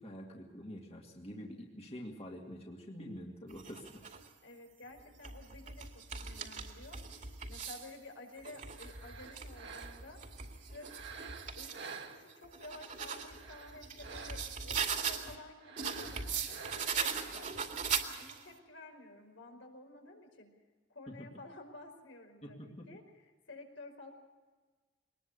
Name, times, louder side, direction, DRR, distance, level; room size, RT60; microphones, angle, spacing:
voice 1, 0.0-4.0 21.1-21.2 22.4-22.9, equal, 35° left, 1 dB, 2.2 m, -46 dB
sound 1, 3.5-4.3 5.0-7.9 8.4-11.8 12.3-15.4 15.8-18.5, right 6 dB, 45° right, 2.4 m, -40 dB
voice 2, 4.4-7.0 7.5-10.2 10.7-17.7 18.2-20.5 20.9-24.1, left 2 dB, 80° left, 3 dB, 5.3 m, -52 dB
sound 2, 8.7-10.2 10.8-12.7 13.2-14.7 15.6-17.2, right 5 dB, 65° right, 1.8 m, -49 dB
22.5 x 20.0 x 6.7 m, 1.4 s
head